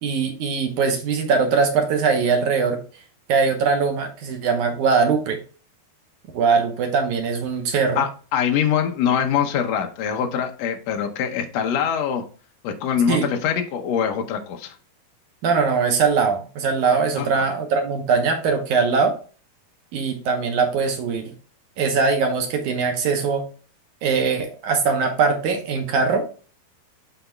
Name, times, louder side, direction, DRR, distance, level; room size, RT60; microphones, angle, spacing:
voice 1, 0.0-2.8 3.3-5.4 6.3-8.0 13.1-13.3 15.4-19.2 19.9-21.3 21.8-23.5 24.0-26.3, right 5 dB, 70° right, 4 dB, 2.1 m, -21 dB
voice 2, 7.9-12.2 12.6-14.7 17.2-17.4, left 8 dB, 90° left, 4 dB, 1.4 m, -23 dB
12.0 x 4.0 x 2.3 m, 0.38 s
omnidirectional pair, 4.2 m